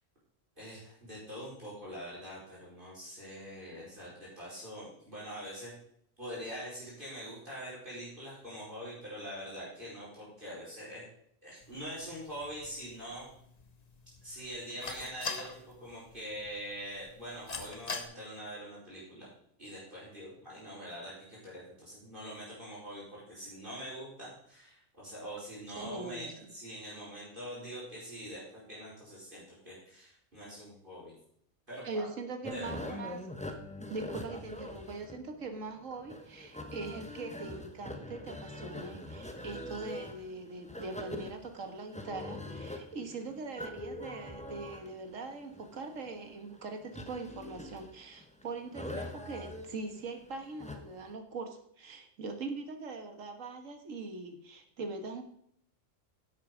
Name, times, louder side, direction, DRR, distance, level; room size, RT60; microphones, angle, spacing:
voice 1, 0.6-5.7 6.2-11.0 11.4-13.3 14.2-19.3 19.6-31.1 31.7-32.1 32.5-33.1, equal, 40° right, -7 dB, 4.9 m, -44 dB
sound 1, 11.6-18.0, left 4 dB, 35° left, 1.1 m, -45 dB
voice 2, 25.8-26.5 31.8-33.2 33.8-55.2, right 3 dB, 85° right, 6 dB, 1.8 m, -42 dB
sound 2, 32.4-51.1, left 1 dB, 5° left, 0.9 m, -44 dB
11.0 x 8.0 x 5.1 m, 0.69 s
omnidirectional pair, 1.3 m